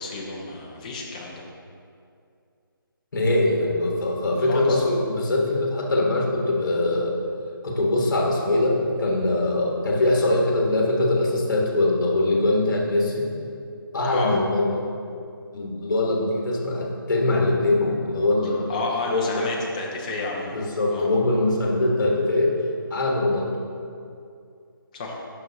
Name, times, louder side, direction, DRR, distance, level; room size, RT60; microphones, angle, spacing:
voice 1, 0.0-1.4 4.3-4.8 14.1-14.4 18.7-20.6 20.9-21.1 24.9-25.2, left 3 dB, 20° left, -2 dB, 0.7 m, -31 dB
voice 2, 3.1-7.2 7.6-13.3 13.9-14.8 15.5-18.6 19.1-19.5 20.5-22.6 22.9-23.5, left 2 dB, 55° left, -1 dB, 1.4 m, -22 dB
8.8 x 6.0 x 2.7 m, 2.4 s
figure-of-eight pair, 165°, 12 cm